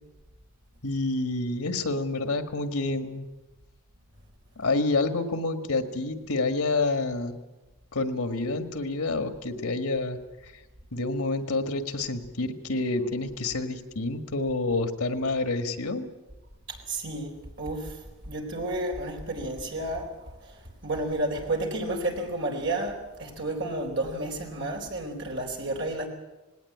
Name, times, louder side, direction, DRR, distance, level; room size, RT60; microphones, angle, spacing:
voice 1, 0.8-3.3 4.6-7.4 7.9-10.2 10.9-16.1, left 3 dB, 85° left, 8 dB, 1.9 m, -28 dB
voice 2, 16.7-18.0 18.3-20.6 20.8-26.1, right 1 dB, 55° right, 2 dB, 4.2 m, -31 dB
19.5 x 18.0 x 8.7 m, 1.1 s
head